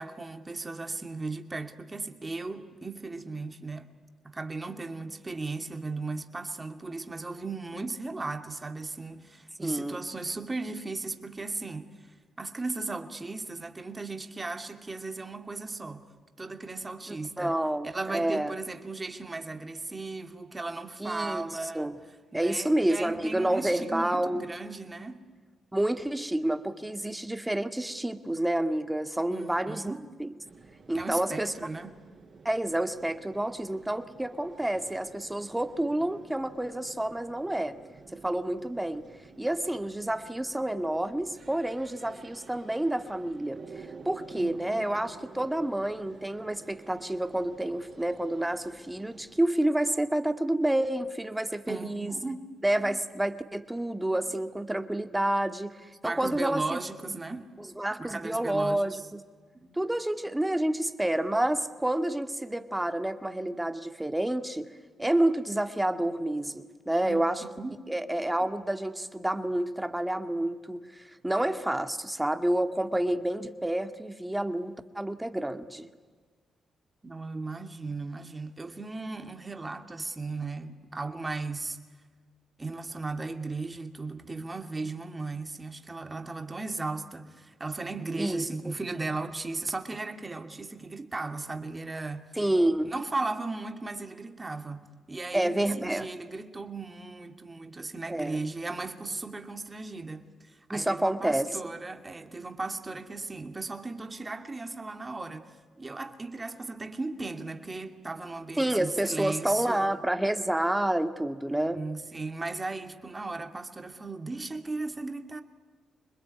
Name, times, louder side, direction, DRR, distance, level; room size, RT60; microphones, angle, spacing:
voice 1, 0.0-3.9 4.2-12.1 12.4-16.0 16.4-17.5 17.8-21.9 22.3-25.3 29.3-30.1 30.9-31.9 44.3-44.9 51.7-52.5 56.0-57.5 58.0-59.0 59.5-59.8 67.0-67.8 77.0-81.8 82.6-92.2 92.9-94.8 95.1-105.5 105.8-110.0 111.5-115.4, right 3 dB, 25° right, 2.6 m, -36 dB
voice 2, 9.6-10.0 17.1-18.5 21.0-22.0 22.3-24.5 25.7-29.9 30.2-30.3 30.9-31.5 32.4-37.8 38.1-39.1 39.4-52.1 52.6-56.8 57.6-59.2 59.7-64.7 65.0-67.4 67.9-75.9 88.2-88.7 92.4-92.9 95.3-96.1 98.1-98.4 100.7-101.6 108.6-111.8, right 1 dB, 10° right, 2.0 m, -29 dB
sound 1, 30.4-49.4, right 4 dB, 50° right, 4.9 m, -51 dB
26.5 x 21.5 x 9.7 m
cardioid pair, 70°, 0 cm